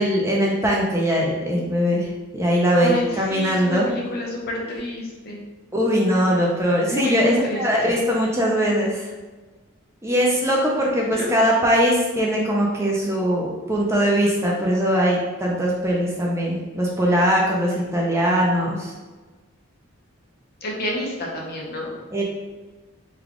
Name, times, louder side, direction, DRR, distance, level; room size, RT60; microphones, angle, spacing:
voice 1, 0.0-2.1 2.3-3.9 5.7-9.1 10.0-18.9 22.1-22.2, equal, 15° right, -2 dB, 0.4 m, -21 dB
voice 2, 2.8-5.4 6.8-7.6 11.1-11.3 20.6-21.9, left 1 dB, 45° left, -2 dB, 0.7 m, -29 dB
3.4 x 2.3 x 3.6 m, 1.3 s
head